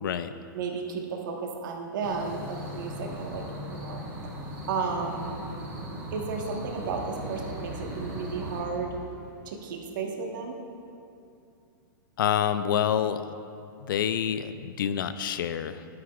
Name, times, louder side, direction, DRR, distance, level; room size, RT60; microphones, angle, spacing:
voice 1, 0.0-0.3 12.2-13.3 13.8-15.9, left 9 dB, 70° left, 12 dB, 0.5 m, -27 dB
voice 2, 0.5-3.4 3.7-4.1 4.7-5.3 6.1-9.0 9.4-10.5, right 5 dB, 65° right, 1 dB, 1.3 m, -33 dB
sound 1, 2.0-8.6, right 1 dB, 30° right, 2.2 m, -38 dB
sound 2, 6.8-9.8, left 1 dB, 5° left, 2.1 m, -44 dB
12.0 x 9.6 x 2.4 m, 2.6 s
hypercardioid pair, 150°, 12 cm